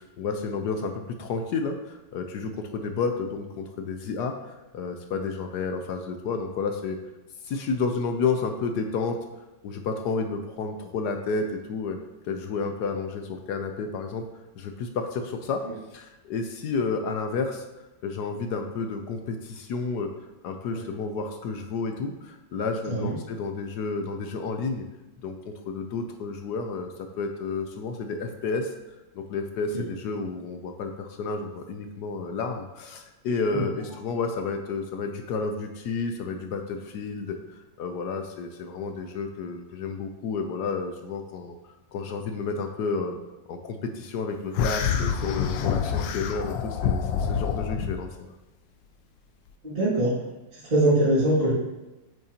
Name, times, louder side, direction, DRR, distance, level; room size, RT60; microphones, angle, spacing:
voice 1, 0.0-7.0 7.4-9.2 9.6-12.0 12.2-14.2 14.6-15.6 15.9-17.6 18.0-20.1 20.4-24.8 25.2-28.7 29.1-41.6 41.9-43.2 43.5-48.3, left 4 dB, 70° left, 5 dB, 1.1 m, -31 dB
sound 1, 44.5-48.0, left 7 dB, 85° left, 1.3 m, -27 dB
voice 2, 49.6-50.1 50.5-51.5, right 1 dB, 30° right, -11 dB, 2.3 m, -23 dB
8.4 x 6.6 x 2.8 m, 1.0 s
omnidirectional pair, 2.0 m